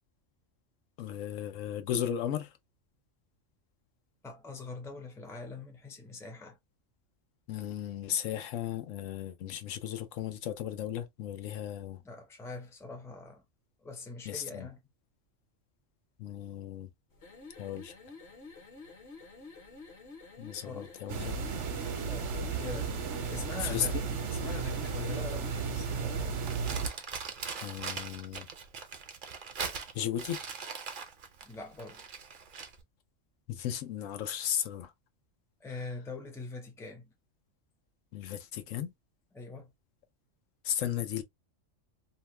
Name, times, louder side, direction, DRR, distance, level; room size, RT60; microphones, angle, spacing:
voice 1, 1.0-2.5 7.5-12.0 14.3-14.7 16.2-16.9 17.6-17.9 20.4-21.4 23.4-24.0 27.6-28.5 29.9-30.4 33.5-34.9 38.1-38.9 40.6-41.2, left 10 dB, 85° left, 1.0 m, -35 dB
voice 2, 4.2-6.6 12.0-13.4 13.8-14.8 20.5-20.9 22.0-24.0 24.3-26.4 31.4-32.0 35.6-37.1 39.3-39.7, left 3 dB, 5° left, 0.5 m, -43 dB
sound 1, 17.1-26.3, left 3 dB, 60° left, 1.2 m, -50 dB
sound 2, 21.1-26.9, right 5 dB, 70° right, 1.0 m, -34 dB
Crumpling crinkling, 26.4-32.8, right 5 dB, 50° right, 0.7 m, -40 dB
2.8 x 2.1 x 3.0 m
omnidirectional pair, 1.3 m